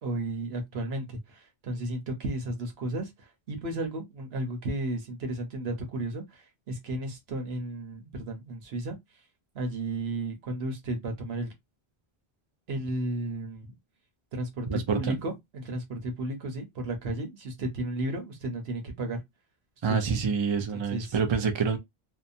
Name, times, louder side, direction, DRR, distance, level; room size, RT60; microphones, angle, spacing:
voice 1, 0.0-9.0 9.5-11.5 12.7-13.7 14.3-19.2 19.9-20.0 20.7-21.1, right 1 dB, 85° right, 1.1 m, -33 dB
voice 2, 14.7-15.2 19.8-21.8, right 5 dB, 35° right, 0.5 m, -27 dB
2.7 x 2.1 x 2.6 m
omnidirectional pair, 1.0 m